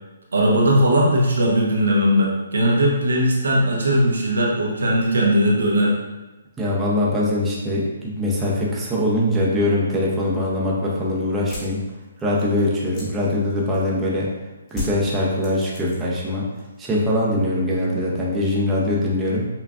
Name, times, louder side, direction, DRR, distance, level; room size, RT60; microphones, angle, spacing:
voice 1, 0.3-6.0, equal, 85° right, -2 dB, 0.9 m, -18 dB
voice 2, 6.6-11.8 12.2-14.3 14.7-16.5 16.8-19.5, left 1 dB, 10° right, -5 dB, 0.6 m, -22 dB
sound 1, 11.4-14.1 14.7-16.2 16.5-17.1, left 2 dB, 20° left, 1.2 m, -36 dB
5.6 x 2.3 x 2.4 m, 1.1 s
hypercardioid pair, 155°, 0 cm